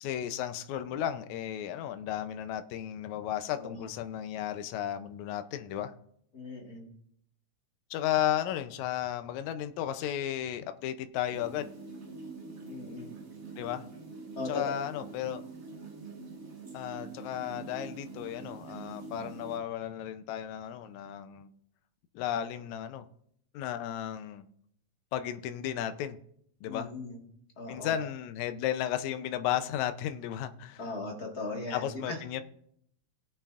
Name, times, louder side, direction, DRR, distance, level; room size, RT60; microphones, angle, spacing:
voice 1, 0.0-5.9 7.9-11.7 13.6-13.9 14.5-15.4 16.7-21.5 22.2-23.1 23.5-24.5 25.1-26.2 26.6-26.9 27.7-30.8 31.7-32.4, left 11 dB, 80° left, 9 dB, 2.0 m, -34 dB
voice 2, 6.3-6.9 12.7-13.1 14.4-14.6 26.7-27.2 27.6-27.9 30.8-32.2, left 3 dB, 40° left, 0 dB, 1.8 m, -38 dB
sound 1, 11.3-19.6, right 4 dB, 35° right, 1.5 m, -45 dB
19.0 x 8.6 x 2.5 m, 0.69 s
omnidirectional pair, 3.3 m